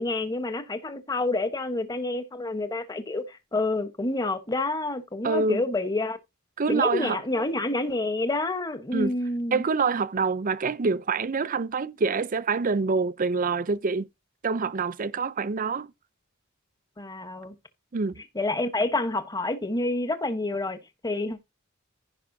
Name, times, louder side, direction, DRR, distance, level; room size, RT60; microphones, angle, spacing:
voice 1, 0.0-6.2 6.7-9.6 17.0-17.5 18.3-21.4, left 2 dB, 20° left, 1.1 m, -28 dB
voice 2, 5.2-5.6 6.6-7.2 8.9-9.1 9.5-14.1 14.4-15.9 17.9-18.2, right 4 dB, 40° right, 0.5 m, -26 dB
15.5 x 5.4 x 2.7 m
head